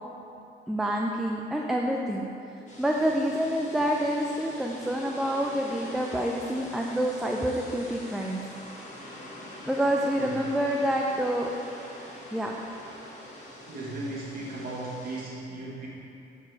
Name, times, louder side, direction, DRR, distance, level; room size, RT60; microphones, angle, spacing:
voice 1, 0.7-2.3 2.8-8.4 9.6-11.5 12.3-12.6, equal, ahead, 0 dB, 0.4 m, -27 dB
sound 1, 2.7-15.2, left 1 dB, 35° left, 1.6 m, -44 dB
voice 2, 10.1-10.5 13.7-15.9, right 2 dB, 50° right, -7 dB, 1.5 m, -36 dB
7.1 x 4.7 x 4.6 m, 2.8 s
cardioid pair, 90°, 20 cm